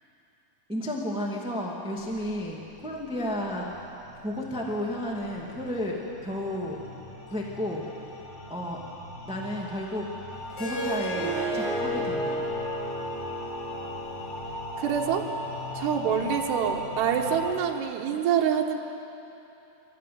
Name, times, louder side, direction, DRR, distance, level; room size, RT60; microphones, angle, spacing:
voice 1, 0.7-3.9 4.2-6.8 7.3-7.8 8.5-8.8 9.2-10.1 10.6-12.4, left 1 dB, 5° right, -2 dB, 1.0 m, -32 dB
sound 1, 2.0-17.5, left 1 dB, 45° left, 0.8 m, -39 dB
Harp, 10.5-15.7, right 1 dB, 85° left, 6.7 m, -32 dB
voice 2, 14.8-15.3 15.7-18.8, right 8 dB, 80° right, 0 dB, 3.3 m, -26 dB
25.0 x 14.5 x 9.5 m, 3.0 s
omnidirectional pair, 4.8 m